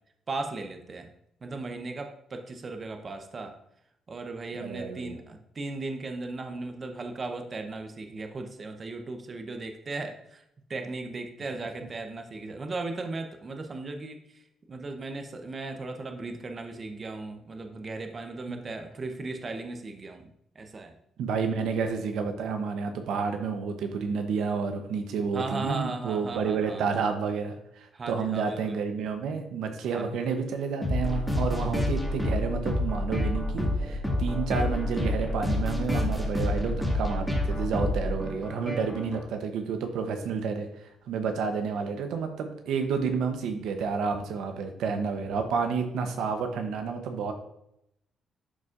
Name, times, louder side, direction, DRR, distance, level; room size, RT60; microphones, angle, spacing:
voice 1, 0.3-1.1 1.4-3.5 4.1-10.4 10.7-14.2 14.7-20.3 20.5-21.0 25.3-26.9 27.9-28.8 29.9-30.0, right 3 dB, 35° right, 5 dB, 0.7 m, -36 dB
voice 2, 4.5-5.2 18.5-18.6 21.2-47.3, right 5 dB, 80° right, 6 dB, 0.8 m, -30 dB
sound 1, 30.8-39.2, left 1 dB, ahead, 1.8 m, -28 dB
11.0 x 4.1 x 2.5 m, 0.77 s
cardioid pair, 90°, 0 cm